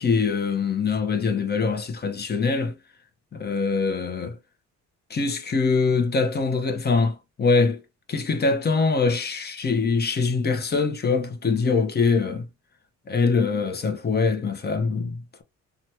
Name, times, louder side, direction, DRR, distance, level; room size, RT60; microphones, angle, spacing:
voice 1, 0.0-2.7 3.3-4.4 5.1-7.8 8.1-12.5 13.1-15.4, left 4 dB, 35° left, 0.8 m, -23 dB
2.9 x 2.3 x 2.9 m
cardioid pair, 90°, 30 cm